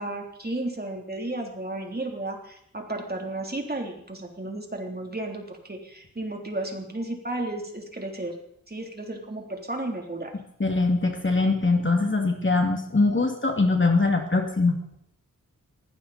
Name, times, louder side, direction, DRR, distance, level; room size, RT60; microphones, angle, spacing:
voice 1, 0.0-8.3 8.7-10.3, right 2 dB, 30° right, 2 dB, 3.6 m, -33 dB
voice 2, 10.6-14.8, left 3 dB, 35° left, 3 dB, 2.7 m, -22 dB
19.5 x 16.0 x 4.4 m, 0.71 s
wide cardioid pair, 70°, 33 cm